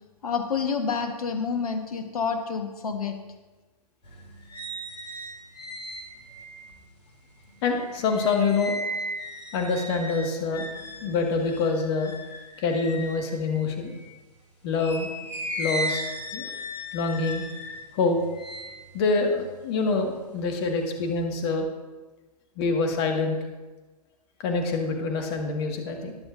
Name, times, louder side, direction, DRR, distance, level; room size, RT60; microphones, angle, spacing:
voice 1, 0.2-3.2, left 5 dB, 65° left, 6 dB, 1.3 m, -28 dB
sound 1, 4.0-14.2 14.7-20.2 20.6-21.2, equal, 80° left, 2.7 m, -37 dB
voice 2, 7.6-8.8 9.5-10.7 11.0-12.1 12.6-14.0 14.6-15.1 15.6-16.0 16.3-16.5 16.9-17.4 17.9-18.2 18.9-21.7 22.6-23.4 24.4-26.2, left 4 dB, 40° left, 3 dB, 1.7 m, -26 dB
21.0 x 7.1 x 2.6 m, 1.2 s
figure-of-eight pair, 115°, 20 cm